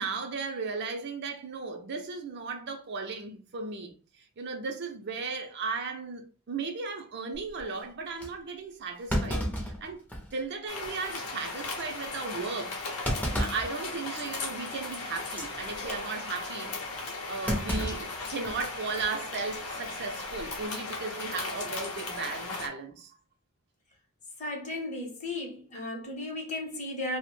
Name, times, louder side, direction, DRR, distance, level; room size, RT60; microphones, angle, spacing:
voice 1, 0.0-10.0 10.3-12.8 13.4-23.1, right 4 dB, 50° right, 0.4 m, -36 dB
Thump thud, 7.3-7.6 8.2-8.3 9.1-10.4 10.8-10.9 11.4-11.6 13.0-13.7 14.2-14.4 15.2-15.5 17.5-18.7 19.0-19.1 20.2-20.6, equal, 5° left, 0.5 m, -32 dB
sound 1, 10.7-22.7, left 3 dB, 75° left, 0.7 m, -37 dB
voice 2, 24.4-27.2, left 2 dB, 30° left, 0.8 m, -35 dB
2.8 x 2.0 x 3.0 m
head